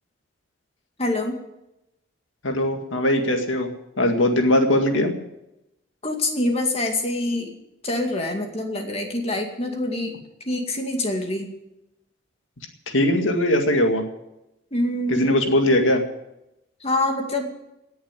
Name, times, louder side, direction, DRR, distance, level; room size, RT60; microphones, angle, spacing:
voice 1, 1.0-1.4 6.0-7.5 7.8-10.2 10.5-11.5 14.7-15.3 16.8-17.5, left 1 dB, 30° left, 2 dB, 2.2 m, -25 dB
voice 2, 2.4-3.7 4.0-5.1 12.9-14.1 15.1-16.0, left 1 dB, 80° left, 4 dB, 2.1 m, -20 dB
18.0 x 7.1 x 9.2 m, 0.90 s
head